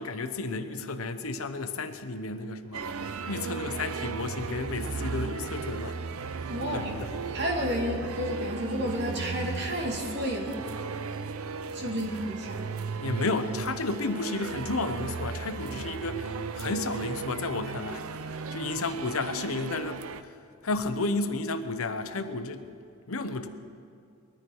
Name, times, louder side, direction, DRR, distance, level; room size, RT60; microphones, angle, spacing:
voice 1, 0.0-2.9 3.3-6.0 6.6-7.1 11.8-12.0 13.0-20.3 20.6-22.6 23.1-23.5, left 3 dB, 80° left, 9 dB, 0.9 m, -32 dB
sound 1, 2.7-20.2, right 5 dB, 85° right, 0.6 m, -36 dB
voice 2, 6.5-7.0 7.3-10.6 11.7-12.7, equal, 50° right, 0 dB, 2.4 m, -31 dB
21.0 x 13.5 x 4.7 m, 2.4 s
head